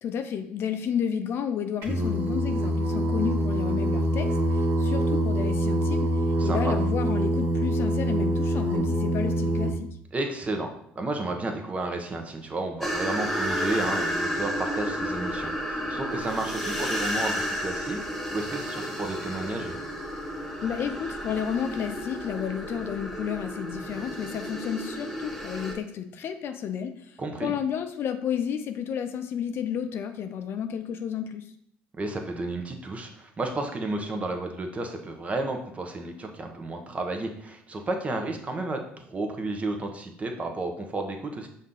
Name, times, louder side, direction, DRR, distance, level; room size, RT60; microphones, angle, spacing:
voice 1, 0.0-6.1 6.4-9.9 20.6-31.4, left 8 dB, 55° left, 8 dB, 0.5 m, -31 dB
Singing, 1.8-9.7, equal, 65° right, 1.3 m, -25 dB
voice 2, 6.4-6.7 10.1-10.7 10.9-19.8 27.2-27.5 32.0-41.5, right 2 dB, 30° right, 4 dB, 0.9 m, -32 dB
sound 1, 12.8-25.7, equal, 5° left, 1.1 m, -32 dB
5.4 x 2.7 x 3.7 m, 0.70 s
supercardioid pair, 75°, 5 cm